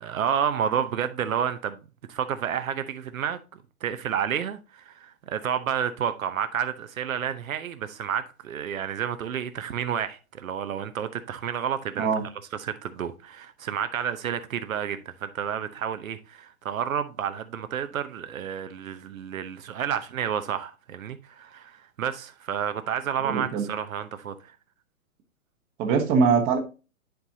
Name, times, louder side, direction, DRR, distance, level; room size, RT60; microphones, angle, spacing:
voice 1, 0.0-1.8 2.1-3.4 3.8-12.1 12.5-24.5, right 8 dB, 65° right, 0.8 m, -30 dB
voice 2, 23.2-23.6 25.8-26.6, right 5 dB, 20° right, 1.0 m, -22 dB
10.5 x 4.0 x 2.7 m
hypercardioid pair, 135°, 43 cm